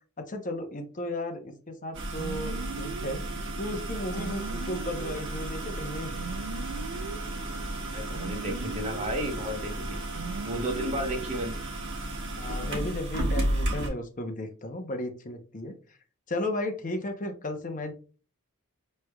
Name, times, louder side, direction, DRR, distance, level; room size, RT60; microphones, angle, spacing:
voice 1, 0.2-3.2 3.6-6.2 12.4-16.0 16.3-17.9, left 1 dB, 35° left, 6 dB, 0.8 m, -34 dB
sound 1, 1.9-13.9, right 1 dB, 55° right, 1.2 m, -33 dB
sound 2, 2.2-11.6, right 5 dB, 85° right, 0.4 m, -40 dB
sound 3, 4.1-13.6, left 2 dB, 90° left, 1.2 m, -50 dB
voice 2, 7.9-9.8 10.4-11.6, equal, 30° right, 3 dB, 0.9 m, -33 dB
6.0 x 3.2 x 2.3 m, 0.36 s
head